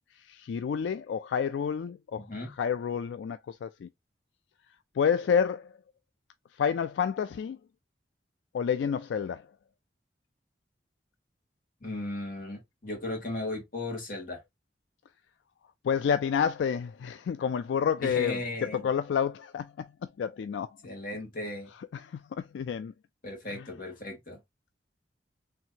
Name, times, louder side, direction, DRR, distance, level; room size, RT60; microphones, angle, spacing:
voice 1, 0.3-2.3 2.6-3.9 5.0-5.7 6.6-7.6 8.5-9.4 15.8-18.4 18.7-19.9 20.2-20.7 21.9-22.9, left 7 dB, 80° left, 0.3 m, -29 dB
voice 2, 2.1-2.5 11.8-14.4 18.0-18.9 20.8-21.7 23.2-24.4, left 2 dB, 50° left, 2.0 m, -36 dB
4.6 x 3.3 x 2.8 m
head